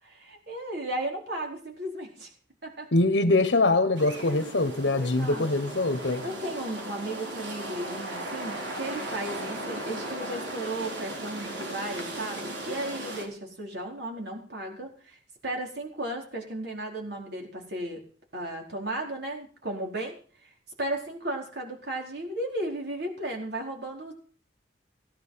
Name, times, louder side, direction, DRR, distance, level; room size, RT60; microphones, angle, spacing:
voice 1, 0.0-2.3 2.6-2.9 5.0-5.5 6.2-18.0 18.3-20.5 20.8-24.1, right 1 dB, 65° right, 4.6 m, -35 dB
voice 2, 2.9-6.2, left 2 dB, 75° left, 1.2 m, -23 dB
sound 1, 4.0-13.2, right 1 dB, 85° right, 4.1 m, -37 dB
18.0 x 10.5 x 5.8 m
head